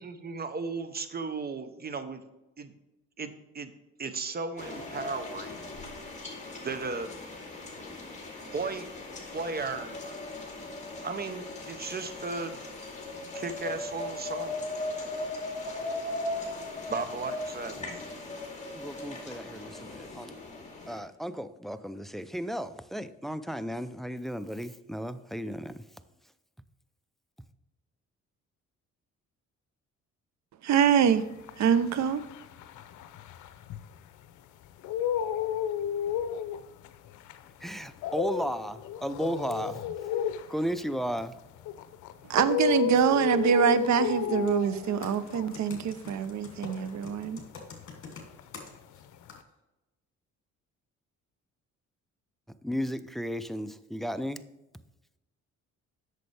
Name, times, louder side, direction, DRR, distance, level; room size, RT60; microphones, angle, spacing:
voice 1, 0.0-2.2 2.6-2.7 3.2-3.7 4.0-5.8 6.6-7.2 8.5-8.9 9.3-10.3 11.0-12.6 13.3-14.6 16.9-18.0, right 4 dB, 30° right, 0.9 m, -36 dB
sound 1, 4.6-21.0, left 2 dB, 25° left, 2.4 m, -38 dB
voice 2, 18.7-20.4 20.9-25.9 37.6-39.8 40.5-41.3 52.6-54.4, equal, ahead, 0.4 m, -34 dB
voice 3, 30.6-31.2 31.6-32.2 42.3-47.4, right 8 dB, 65° right, 0.7 m, -25 dB
sound 2, 31.0-34.3 34.6-48.1 48.3-49.4, left 9 dB, 85° left, 0.6 m, -33 dB
Computer keyboard, 44.4-44.6 45.0-49.0 49.3-49.4, left 5 dB, 45° left, 2.6 m, -45 dB
8.3 x 6.7 x 3.4 m
cardioid pair, 90°, 30 cm